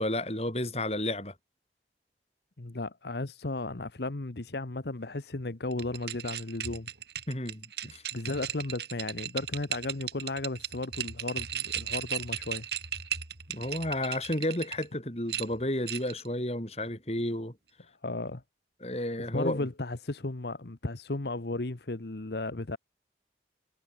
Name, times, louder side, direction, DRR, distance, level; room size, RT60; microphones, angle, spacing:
voice 1, 0.0-1.3 7.3-8.0 13.5-17.5 18.8-19.7, left 1 dB, 35° left, 5.1 m, -32 dB
voice 2, 2.6-6.9 8.1-12.7 18.0-18.4 19.3-22.8, left 2 dB, 70° left, 1.2 m, -34 dB
sound 1, 5.7-14.9 15.3-16.3, right 9 dB, 70° right, 3.9 m, -36 dB
head